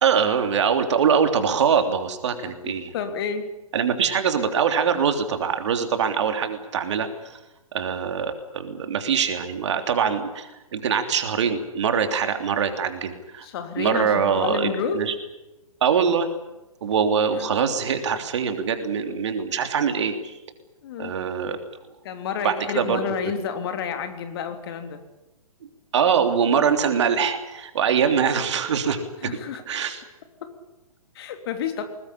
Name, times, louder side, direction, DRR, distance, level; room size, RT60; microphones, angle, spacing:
voice 1, 0.0-2.9 3.7-7.3 7.7-13.5 13.8-15.1 15.8-16.3 16.8-20.3 21.0-21.6 22.4-23.0 25.6-29.3 29.7-30.0, right 7 dB, 50° right, 7 dB, 3.3 m, -23 dB
voice 2, 2.4-3.5 13.4-15.0 17.2-17.5 20.8-21.1 22.0-25.0 29.2-29.6 31.1-31.9, left 6 dB, 40° left, 7 dB, 3.2 m, -30 dB
21.5 x 19.5 x 10.0 m, 0.99 s
figure-of-eight pair, 125°, 19 cm